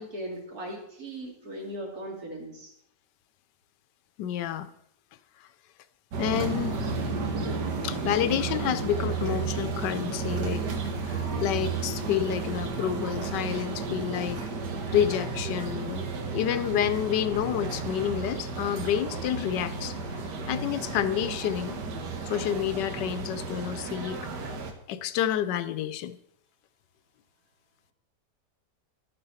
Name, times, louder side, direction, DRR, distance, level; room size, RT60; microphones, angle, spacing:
voice 1, 0.0-2.7 16.6-16.8, right 1 dB, 60° right, 0 dB, 2.8 m, -38 dB
voice 2, 4.2-4.7 6.2-6.9 7.8-10.6 11.0-14.5 14.9-19.9 20.5-21.8 22.3-24.2 24.9-26.2, left 10 dB, 80° left, 13 dB, 1.3 m, -29 dB
sound 1, 6.1-24.7, right 4 dB, 75° right, 1.7 m, -32 dB
11.5 x 8.7 x 4.2 m, 0.74 s
omnidirectional pair, 1.9 m